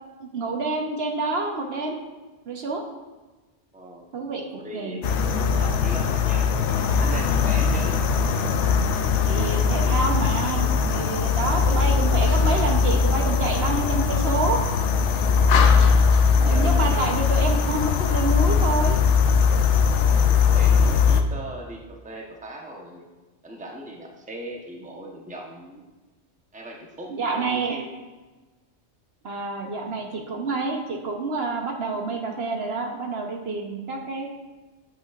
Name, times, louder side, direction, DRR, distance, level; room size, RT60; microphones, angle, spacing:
voice 1, 0.2-2.0 2.5-2.8 4.1-4.4 4.7-5.0 9.3-14.6 16.4-19.0 27.1-27.8 29.2-34.3, right 3 dB, 65° right, 2 dB, 1.1 m, -28 dB
voice 2, 3.7-4.1 4.5-8.0 16.2-17.3 20.4-23.1 23.4-25.8 26.5-27.9, right 1 dB, 5° right, 0 dB, 0.9 m, -38 dB
sound 1, 5.0-21.2, left 5 dB, 85° left, 0.9 m, -20 dB
8.6 x 8.6 x 2.5 m, 1.2 s
omnidirectional pair, 1.2 m